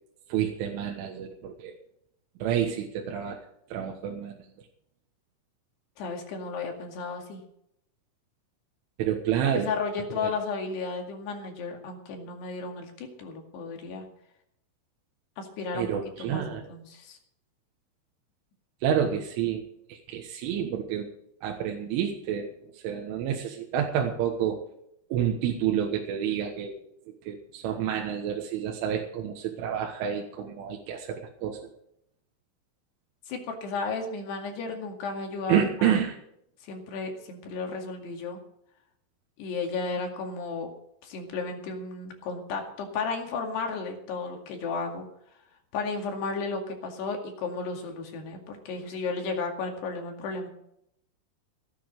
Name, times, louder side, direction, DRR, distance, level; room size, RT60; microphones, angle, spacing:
voice 1, 0.3-1.8 2.4-3.4 3.7-4.4 9.0-9.8 10.2-10.3 15.7-16.7 18.8-19.6 19.9-21.1 21.4-24.6 25.1-26.8 27.3-31.6 35.5-36.2, right 9 dB, 75° right, 2 dB, 3.7 m, -29 dB
voice 2, 6.0-7.4 9.6-14.1 15.4-15.9 16.2-17.2 33.3-36.0 36.6-38.4 39.4-40.7 41.0-45.1 45.7-50.5, left 4 dB, 60° left, 3 dB, 3.9 m, -33 dB
17.0 x 11.0 x 5.3 m, 0.75 s
omnidirectional pair, 5.8 m